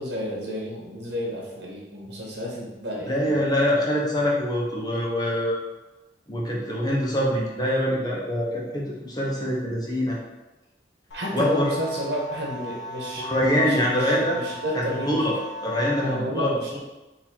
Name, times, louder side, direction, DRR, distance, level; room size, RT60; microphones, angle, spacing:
voice 1, 0.0-3.4 11.1-13.2 13.6-15.2 16.0-16.8, equal, 80° right, -3 dB, 1.3 m, -31 dB
voice 2, 3.1-5.6 6.3-10.2 11.3-11.7 13.2-14.4 14.7-15.3 15.6-16.8, equal, 20° left, -4 dB, 0.9 m, -24 dB
sound 1, 11.1-16.1, equal, 80° left, 0.8 m, -37 dB
4.0 x 2.8 x 4.5 m, 1.1 s
head